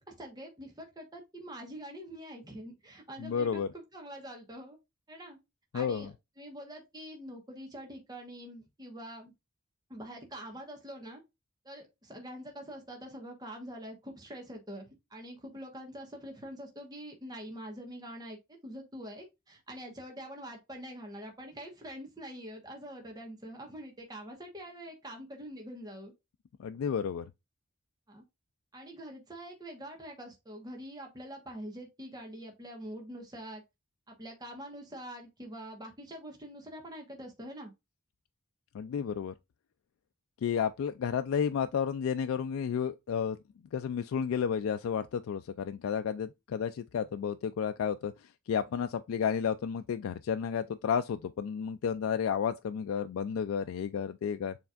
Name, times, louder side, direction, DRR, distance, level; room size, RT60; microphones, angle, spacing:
voice 1, 0.0-4.8 5.1-5.4 5.7-6.1 6.4-9.3 9.9-11.2 11.6-14.8 15.1-26.1 28.1-28.2 28.7-33.6 34.1-37.7, equal, 20° right, 1.2 m, -45 dB
voice 2, 3.2-3.7 5.7-6.1 26.6-27.3 38.7-39.3 40.4-43.4 43.7-54.6, left 7 dB, 90° left, 0.3 m, -32 dB
6.9 x 3.3 x 2.4 m
head